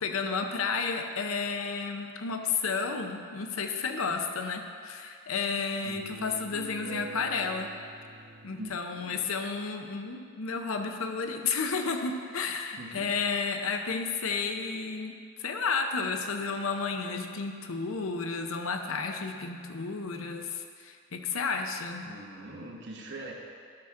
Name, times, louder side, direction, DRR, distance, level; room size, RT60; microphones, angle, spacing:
voice 1, 0.0-7.7 8.4-22.1, left 5 dB, 70° left, 5 dB, 0.7 m, -32 dB
sound 1, 5.8-8.7, right 2 dB, 85° right, 1.1 m, -44 dB
voice 2, 8.9-9.3 12.8-13.1 22.0-23.3, right 2 dB, 55° right, -1 dB, 1.1 m, -43 dB
12.0 x 6.0 x 3.7 m, 2.2 s
head